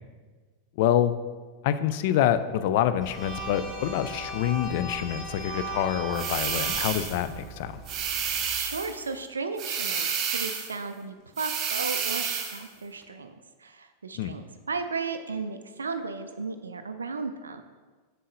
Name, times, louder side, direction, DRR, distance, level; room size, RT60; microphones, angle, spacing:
voice 1, 0.8-1.1 1.6-7.7 14.1-14.4, left 11 dB, 50° left, 12 dB, 0.3 m, -26 dB
sound 1, 3.0-8.4, right 2 dB, 25° left, 2.0 m, -38 dB
sound 2, 6.1-7.2 7.9-9.0 9.6-10.8 11.4-12.6, right 7 dB, 35° right, 0.8 m, -30 dB
voice 2, 8.4-13.3 13.6-17.6, right 4 dB, 75° right, 8 dB, 0.3 m, -35 dB
7.3 x 6.8 x 2.6 m, 1.4 s
figure-of-eight pair, 90°, 0 cm